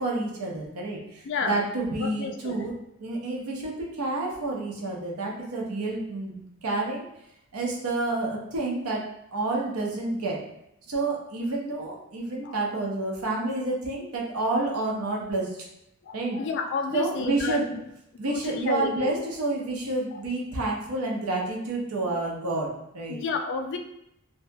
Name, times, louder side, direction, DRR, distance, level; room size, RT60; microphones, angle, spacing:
voice 1, 0.0-7.1 7.5-9.0 9.3-10.4 10.9-15.5 16.1-16.4 16.9-17.7 18.2-23.2, right 2 dB, 75° right, -2 dB, 0.7 m, -29 dB
voice 2, 1.2-1.6 2.0-2.7 12.4-12.5 16.0-17.6 18.3-19.2 20.1-20.2 22.0-22.1 23.1-23.8, left 4 dB, 55° left, 5 dB, 0.3 m, -31 dB
2.7 x 2.2 x 2.6 m, 0.80 s
head